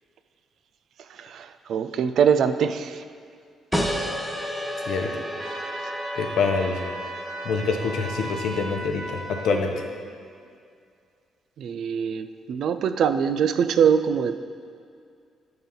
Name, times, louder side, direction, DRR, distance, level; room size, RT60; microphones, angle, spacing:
voice 1, 1.2-3.0 3.8-4.1 11.6-14.4, right 7 dB, 70° right, 11 dB, 0.3 m, -23 dB
sound 1, 3.7-8.9, equal, ahead, 0.6 m, -32 dB
sound 2, 5.4-9.6, right 1 dB, 85° right, 1.4 m, -36 dB
voice 2, 6.2-6.8 7.4-9.2 9.4-9.8, left 4 dB, 75° left, 3 dB, 0.7 m, -25 dB
7.1 x 3.8 x 5.5 m, 2.3 s
cardioid pair, 90°, 0 cm